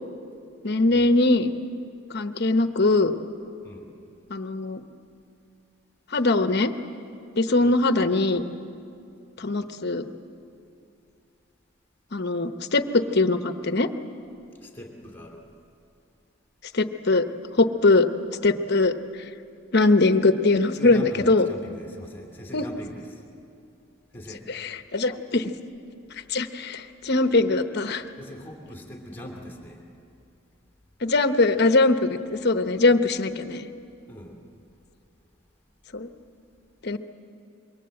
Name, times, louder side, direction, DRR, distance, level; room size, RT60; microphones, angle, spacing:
voice 1, 0.6-1.5 2.1-3.1 4.3-4.8 6.1-6.7 7.4-8.4 9.4-10.1 12.1-13.9 16.7-17.2 17.6-18.1 18.4-18.9 19.7-21.5 22.5-22.7 24.5-25.5 26.3-28.0 31.0-33.7 35.9-36.1 36.8-37.0, left 2 dB, 55° left, 9 dB, 1.0 m, -21 dB
voice 2, 14.6-15.4 20.7-23.2 24.1-24.4 28.2-29.8 34.1-34.4, equal, 10° left, 1 dB, 2.7 m, -40 dB
26.5 x 23.0 x 7.8 m, 2.6 s
head